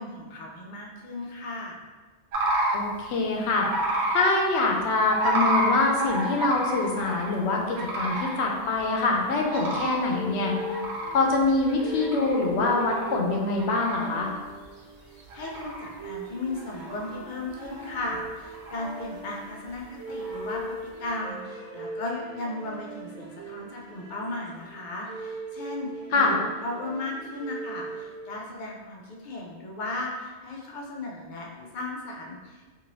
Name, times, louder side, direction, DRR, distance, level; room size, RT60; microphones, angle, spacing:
voice 1, 0.0-1.8 15.3-32.6, left 2 dB, 60° left, -1 dB, 0.6 m, -36 dB
sound 1, 2.3-2.8 3.6-4.3 5.1-7.4 7.7-8.4 8.8-8.9 9.4-10.0 10.5-12.5 12.8-13.2 13.6-14.1 14.6-14.7 15.2-16.0 16.6-17.3 17.6-18.1 18.4-19.0 20.1-20.7, right 1 dB, 80° right, 0.9 m, -29 dB
voice 2, 2.7-3.7 4.1-10.5 11.1-14.3 26.1-26.4, left 3 dB, 80° left, 0 dB, 0.9 m, -24 dB
sound 2, 10.1-28.6, right 2 dB, 30° right, 0.9 m, -39 dB
2.8 x 2.6 x 2.9 m, 1.3 s
omnidirectional pair, 1.1 m